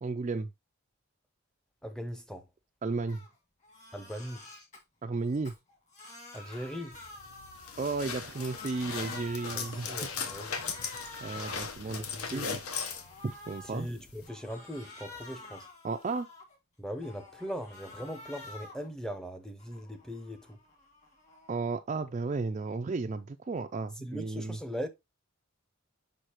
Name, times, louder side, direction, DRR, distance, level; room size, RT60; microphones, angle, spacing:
voice 1, 0.0-0.5 2.8-3.2 5.0-5.5 7.8-9.9 10.6-10.7 11.2-12.6 13.2-13.9 15.8-16.3 21.5-24.6, right 3 dB, 30° right, 0.3 m, -34 dB
voice 2, 1.8-2.4 3.9-4.4 6.3-7.0 9.5-10.5 11.8-12.4 13.7-15.7 16.8-20.6 24.0-24.9, equal, 5° left, 0.6 m, -40 dB
Crying sobbing, 3.1-3.3 3.6-4.8 5.3-8.0 8.3-9.8 10.2-11.7 12.2-13.8 14.2-16.6 17.0-18.9 19.3-21.6, left 2 dB, 35° left, 1.9 m, -49 dB
sound 1, 6.9-14.3, left 5 dB, 80° left, 1.0 m, -39 dB
6.4 x 5.2 x 2.9 m
head